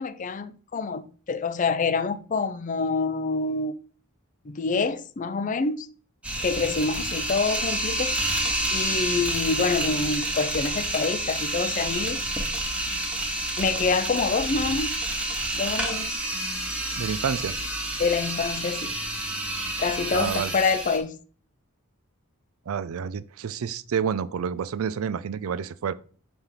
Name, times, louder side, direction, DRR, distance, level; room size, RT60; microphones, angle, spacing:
voice 1, 0.0-3.7 4.4-5.9 6.4-8.2 8.7-12.2 13.6-15.0 15.5-16.2 18.0-19.0 19.8-21.2, left 4 dB, 35° left, 0.4 m, -26 dB
sound 1, 6.2-21.0, right 1 dB, 5° right, 1.1 m, -29 dB
voice 2, 17.0-17.6 20.1-20.5 22.7-25.9, right 7 dB, 75° right, 0.4 m, -29 dB
6.0 x 3.4 x 5.6 m
head